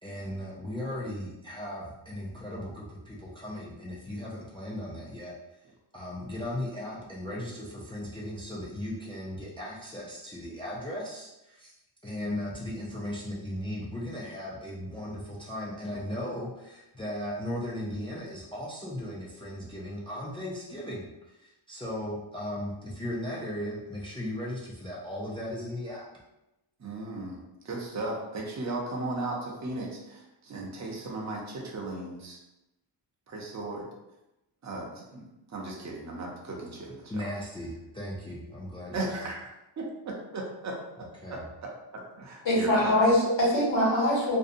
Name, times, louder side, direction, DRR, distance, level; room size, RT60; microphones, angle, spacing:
voice 1, 0.0-5.4 5.9-11.7 12.0-26.1 37.1-39.3 41.2-41.4, left 1 dB, 15° left, -4 dB, 0.3 m, -37 dB
voice 2, 26.8-27.4 27.6-32.4 33.3-33.9 34.6-37.3 38.9-39.5 39.8-39.9 40.3-43.1, right 2 dB, 35° right, -2 dB, 0.5 m, -36 dB
voice 3, 42.4-44.4, left 1 dB, 65° left, -6 dB, 1.2 m, -23 dB
2.6 x 2.0 x 2.5 m, 0.94 s
wide cardioid pair, 120°, 48 cm